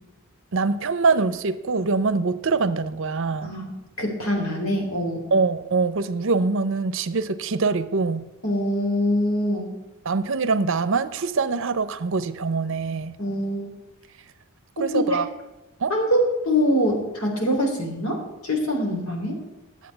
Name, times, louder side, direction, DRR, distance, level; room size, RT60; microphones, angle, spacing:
voice 1, 0.5-3.5 5.3-8.3 10.0-13.2 14.8-15.3 15.8-15.9, right 4 dB, 65° right, 13 dB, 0.7 m, -24 dB
voice 2, 3.4-3.7 4.0-5.2 8.4-9.7 13.2-13.7 14.8-15.2 15.9-19.4, equal, 85° left, 2 dB, 3.5 m, -24 dB
10.0 x 7.5 x 8.1 m, 1.1 s
head